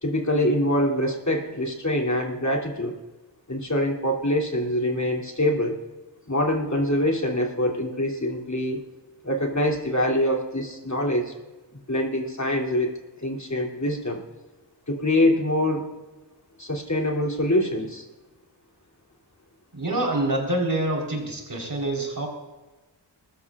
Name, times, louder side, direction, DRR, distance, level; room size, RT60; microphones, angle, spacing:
voice 1, 0.0-3.0 3.5-5.8 6.3-8.8 9.2-11.3 11.7-14.2 14.9-15.9 16.6-18.0, left 1 dB, 40° left, 0 dB, 2.9 m, -24 dB
voice 2, 19.7-22.3, right 1 dB, 50° right, 0 dB, 4.1 m, -26 dB
22.0 x 14.0 x 2.5 m, 1.2 s
wide cardioid pair, 45°, 44 cm